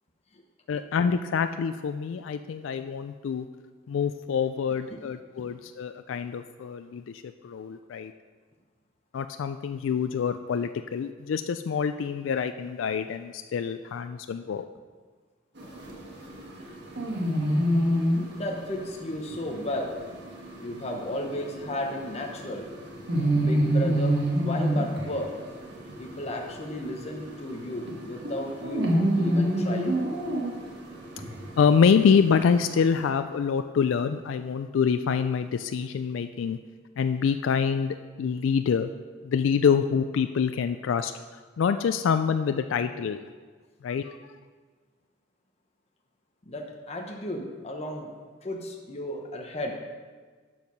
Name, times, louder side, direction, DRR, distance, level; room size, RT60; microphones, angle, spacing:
voice 1, 0.7-3.5 3.9-8.1 9.1-14.6 31.6-36.6 37.0-38.9 39.2-41.1 41.6-43.2 43.8-44.2, left 6 dB, 80° left, 9 dB, 0.3 m, -26 dB
sound 1, 15.6-33.1, right 1 dB, 60° right, 1.6 m, -29 dB
voice 2, 18.3-20.0 20.6-22.7 23.3-25.3 26.0-30.0 46.5-48.1 48.4-49.7, left 1 dB, 35° left, 1 dB, 0.9 m, -34 dB
12.0 x 4.6 x 5.4 m, 1.5 s
head